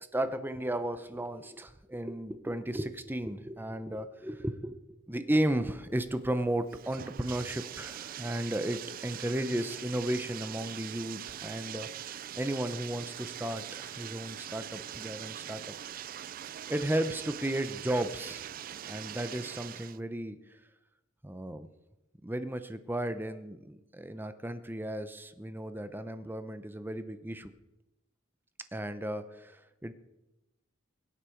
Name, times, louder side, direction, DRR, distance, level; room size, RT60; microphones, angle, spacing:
voice 1, 0.1-4.8 5.1-15.7 16.7-18.5 18.9-20.4 21.2-21.7 22.2-27.5 28.7-29.9, right 1 dB, 10° right, 11 dB, 0.6 m, -34 dB
Bathtub (filling or washing), 5.9-20.0, right 10 dB, 45° right, 0.3 m, -42 dB
22.0 x 8.4 x 4.5 m, 0.97 s
head